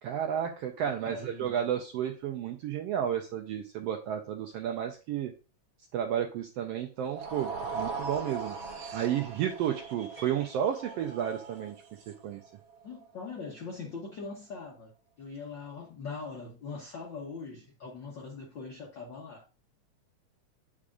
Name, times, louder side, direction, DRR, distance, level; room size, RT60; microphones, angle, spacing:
voice 1, 0.0-5.3 5.9-11.8 12.2-12.4, right 9 dB, 80° right, 1.4 m, -32 dB
voice 2, 0.8-1.6 12.8-14.9 15.2-19.4, left 4 dB, 70° left, 1.1 m, -41 dB
sound 1, 7.0-13.3, right 4 dB, 65° right, 1.7 m, -40 dB
sound 2, 9.7-11.7, right 1 dB, 20° left, 2.7 m, -50 dB
8.6 x 4.9 x 2.4 m
omnidirectional pair, 3.4 m